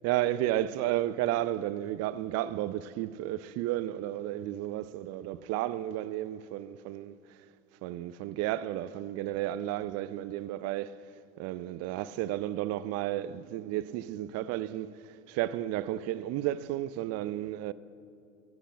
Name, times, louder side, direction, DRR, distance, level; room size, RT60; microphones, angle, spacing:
voice 1, 0.0-7.2 7.8-11.0 11.4-17.7, right 14 dB, 40° right, 0.5 m, -32 dB
13.5 x 8.1 x 8.4 m
hypercardioid pair, 85°, 40 cm